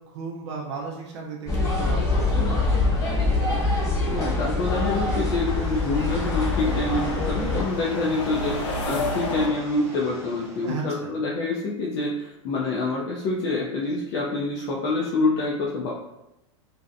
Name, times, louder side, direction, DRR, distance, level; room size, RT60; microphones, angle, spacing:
voice 1, 0.1-3.2 10.6-10.9, right 5 dB, 65° right, -1 dB, 0.5 m, -35 dB
sound 1, 1.5-7.6, left 3 dB, 20° left, 0.9 m, -24 dB
sound 2, 2.7-9.5, left 1 dB, 80° left, 0.6 m, -34 dB
sound 3, 2.8-10.8, equal, 15° right, 0.5 m, -43 dB
voice 2, 4.1-15.9, left 3 dB, 40° left, -4 dB, 0.4 m, -26 dB
2.6 x 2.1 x 2.5 m, 0.93 s
hypercardioid pair, 130°, 16 cm